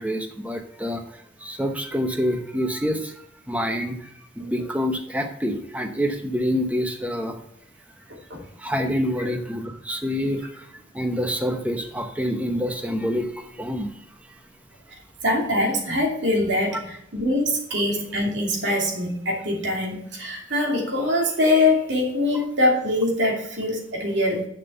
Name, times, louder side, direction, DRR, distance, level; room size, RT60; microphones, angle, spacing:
voice 1, 0.0-7.4 8.6-13.9, equal, 5° right, 5 dB, 0.8 m, -27 dB
voice 2, 15.2-24.5, left 1 dB, 65° right, -1 dB, 2.7 m, -23 dB
7.2 x 6.0 x 6.8 m, 0.73 s
head